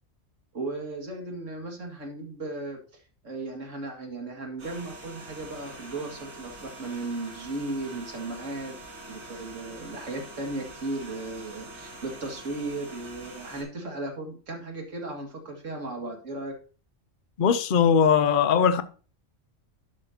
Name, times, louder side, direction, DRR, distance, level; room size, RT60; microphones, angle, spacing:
voice 1, 0.5-8.8 9.1-16.5, right 2 dB, 65° right, 2.4 m, -36 dB
sound 1, 4.6-13.6, right 2 dB, 90° right, 3.6 m, -44 dB
voice 2, 17.4-18.8, left 7 dB, 45° left, 0.8 m, -20 dB
11.5 x 7.5 x 2.8 m
omnidirectional pair, 1.4 m